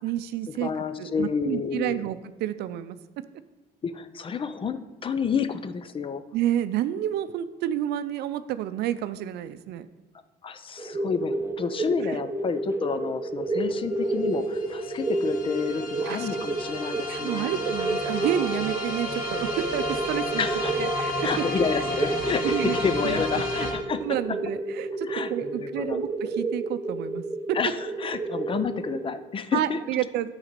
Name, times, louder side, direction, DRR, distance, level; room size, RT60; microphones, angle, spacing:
voice 1, 0.0-0.7 1.0-3.0 6.3-9.9 12.1-12.2 16.0-16.3 17.1-20.4 20.8-21.3 22.4-22.8 23.0-23.2 23.6-23.7 24.0-27.2 27.5-27.6 29.5-30.3, right 11 dB, 75° right, 13 dB, 0.5 m, -29 dB
voice 2, 0.6-2.0 3.8-6.2 10.4-17.5 20.4-20.7 21.2-24.0 25.0-26.0 27.5-29.8, left 6 dB, 30° left, 12 dB, 0.5 m, -29 dB
sound 1, 10.8-29.1, right 3 dB, 15° right, 0.8 m, -31 dB
sound 2, 13.5-13.6 13.8-23.7, left 2 dB, 60° left, 2.0 m, -33 dB
8.8 x 4.0 x 6.7 m, 1.2 s
cardioid pair, 110°, 17 cm